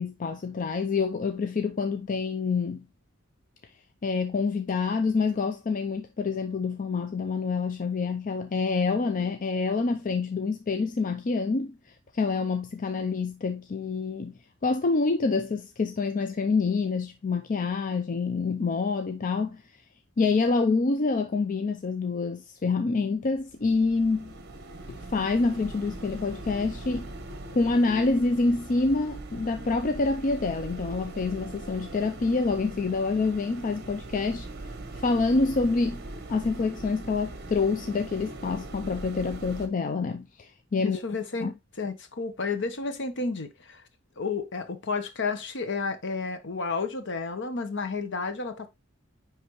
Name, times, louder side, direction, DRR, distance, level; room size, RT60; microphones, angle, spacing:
voice 1, 0.0-2.8 4.0-11.8 12.1-14.3 14.6-19.6 20.2-24.3 24.9-27.1 27.6-34.5 34.9-36.0 36.3-41.0 41.4-41.5, left 4 dB, 40° left, 0.5 m, -27 dB
sound 1, 23.4-39.7, right 2 dB, 55° right, 1.0 m, -41 dB
voice 2, 40.8-41.5 41.8-43.8 44.2-48.7, left 4 dB, 60° left, 0.9 m, -31 dB
9.5 x 3.3 x 3.0 m
head